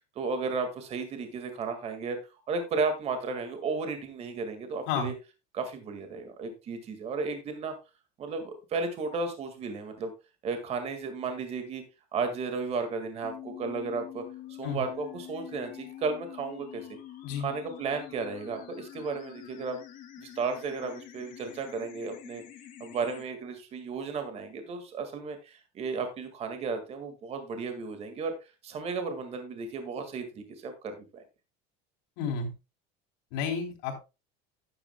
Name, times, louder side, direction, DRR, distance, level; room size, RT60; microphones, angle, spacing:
voice 1, 0.2-2.2 2.5-5.1 5.5-7.7 8.2-10.1 10.4-11.8 12.1-14.2 14.6-16.9 17.4-19.8 20.2-22.4 22.8-28.3 28.6-31.0, right 4 dB, 30° right, 7 dB, 1.9 m, -34 dB
sound 1, 13.2-23.2, left 12 dB, 40° left, 2.1 m, -46 dB
voice 2, 32.2-32.5 33.3-34.0, left 6 dB, 65° left, 2 dB, 3.8 m, -31 dB
11.5 x 11.0 x 2.2 m, 0.27 s
cardioid pair, 170°, 21 cm